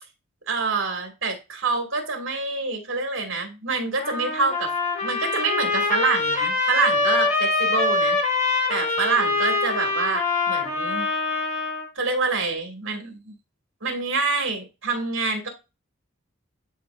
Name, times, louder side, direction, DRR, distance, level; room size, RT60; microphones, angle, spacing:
voice 1, 0.5-4.7 5.0-8.2 8.7-11.1 12.0-13.3 13.8-15.5, right 4 dB, 70° right, 3 dB, 2.1 m, -26 dB
Trumpet, 4.0-11.9, left 3 dB, 30° left, 1.9 m, -24 dB
10.5 x 4.2 x 2.5 m, 0.27 s
head